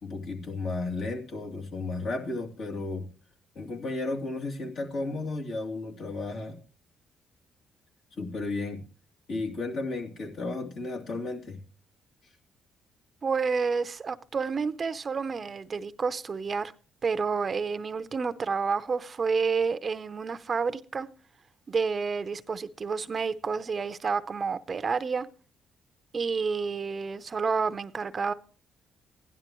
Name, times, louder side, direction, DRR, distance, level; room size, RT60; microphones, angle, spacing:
voice 1, 0.0-3.1 3.5-6.6 8.2-8.8 9.3-11.6, left 3 dB, 65° left, 2.7 m, -33 dB
voice 2, 13.2-16.7 17.0-21.1 21.7-25.3 26.1-28.3, right 5 dB, 40° right, 0.6 m, -29 dB
16.0 x 11.0 x 3.0 m
cardioid pair, 90°, 0 cm